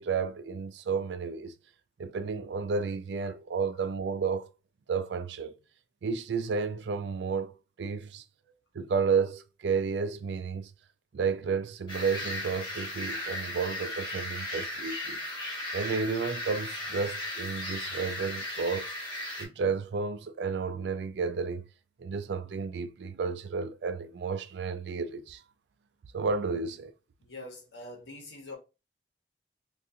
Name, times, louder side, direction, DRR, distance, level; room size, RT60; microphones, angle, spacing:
voice 1, 0.0-1.5 2.0-4.5 4.9-5.5 6.0-7.5 7.8-8.2 8.7-10.7 11.1-15.2 15.7-18.9 19.4-21.6 22.0-25.4 26.1-26.9, right 5 dB, 80° right, 0.4 m, -32 dB
sound 1, 11.9-19.4, left 1 dB, 25° left, 1.2 m, -36 dB
voice 2, 27.2-28.6, left 2 dB, 80° left, 1.0 m, -44 dB
3.7 x 2.5 x 2.7 m
head